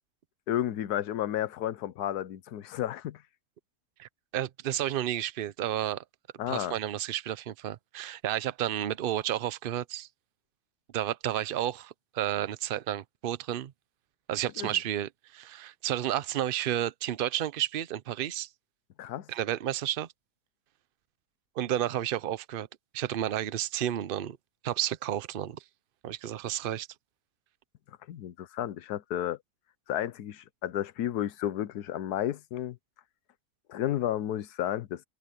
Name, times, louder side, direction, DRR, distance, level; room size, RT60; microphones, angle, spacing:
voice 1, 0.5-3.2 6.4-6.7 14.6-14.8 19.0-19.3 28.1-29.4 29.9-32.8 33.7-35.0, left 11 dB, 75° left, 1.3 m, -32 dB
voice 2, 4.0-6.0 6.5-10.1 10.9-13.7 14.3-18.5 19.3-20.1 21.6-22.7 22.9-24.4 24.6-25.6 26.0-26.9, right 11 dB, 60° right, 0.5 m, -31 dB
omnidirectional pair, 1.7 m